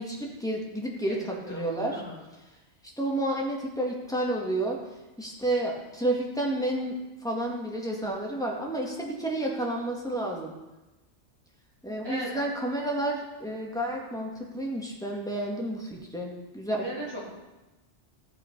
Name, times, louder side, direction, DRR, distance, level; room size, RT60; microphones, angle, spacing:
voice 1, 0.0-2.0 3.0-4.8 5.2-10.5 11.8-16.8, right 1 dB, 5° left, -2 dB, 1.7 m, -30 dB
voice 2, 1.5-2.2 12.0-12.4 16.8-17.2, equal, 20° right, -7 dB, 3.7 m, -37 dB
14.5 x 5.9 x 5.3 m, 1.1 s
omnidirectional pair, 1.2 m